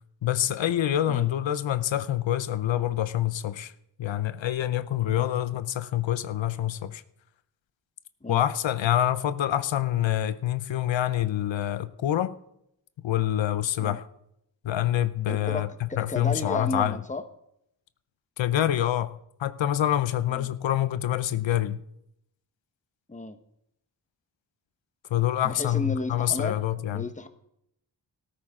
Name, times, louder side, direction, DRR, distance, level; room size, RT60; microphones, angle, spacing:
voice 1, 0.2-3.7 4.0-7.0 8.3-12.4 13.0-14.0 14.6-17.0 18.4-21.8 25.1-27.0, left 12 dB, 85° left, 0.7 m, -26 dB
voice 2, 15.3-17.2 20.3-20.5 23.1-23.4 25.4-26.6 26.9-27.3, left 2 dB, 15° left, 1.1 m, -33 dB
13.5 x 13.5 x 3.7 m
wide cardioid pair, 80°, 44 cm